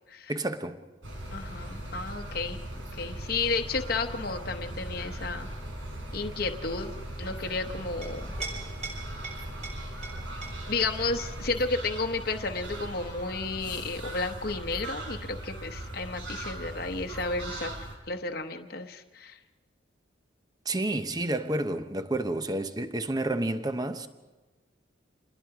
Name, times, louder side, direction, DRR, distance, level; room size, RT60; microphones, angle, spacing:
voice 1, 0.3-0.9 20.6-24.1, right 2 dB, 20° right, 0.9 m, -30 dB
sound 1, 1.0-18.0, right 1 dB, 85° right, 4.6 m, -39 dB
voice 2, 1.3-2.6 2.9-5.5 6.1-6.9 7.2-8.3 10.7-17.8 18.1-19.4, left 3 dB, 50° left, 1.0 m, -32 dB
Chink clink, 7.8-14.9, right 2 dB, 40° right, 6.0 m, -44 dB
27.0 x 21.0 x 4.9 m
head